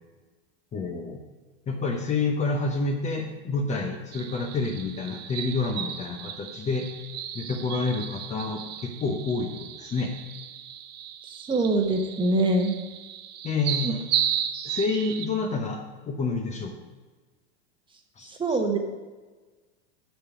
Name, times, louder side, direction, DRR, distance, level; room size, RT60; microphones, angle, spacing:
voice 1, 0.7-1.2 1.7-6.9 7.3-10.1 13.4-14.0 14.6-16.7 18.2-18.6, left 3 dB, 20° left, 3 dB, 0.9 m, -28 dB
sound 1, 4.1-15.3, right 10 dB, 30° right, 0.6 m, -34 dB
voice 2, 11.5-12.8 13.8-13.9 18.3-18.8, right 2 dB, 15° right, 4 dB, 1.2 m, -24 dB
9.2 x 6.7 x 5.0 m, 1.3 s
hypercardioid pair, 125°, 34 cm